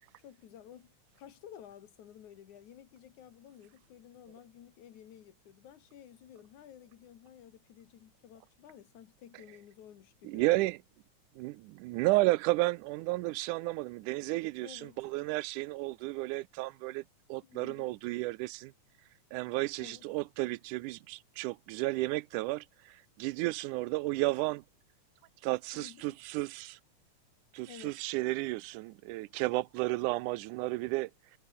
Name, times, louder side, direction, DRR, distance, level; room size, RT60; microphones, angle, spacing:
voice 1, 0.2-10.5 14.2-14.3 14.6-15.0 17.4-18.0 19.8-20.1 25.7-26.2 27.7-28.0, left 10 dB, 75° left, 3.1 m, -53 dB
voice 2, 10.2-10.8 11.4-17.0 17.3-18.7 19.3-24.6 25.4-26.8 27.5-31.4, right 20 dB, 85° right, 2.1 m, -32 dB
omnidirectional pair, 3.5 m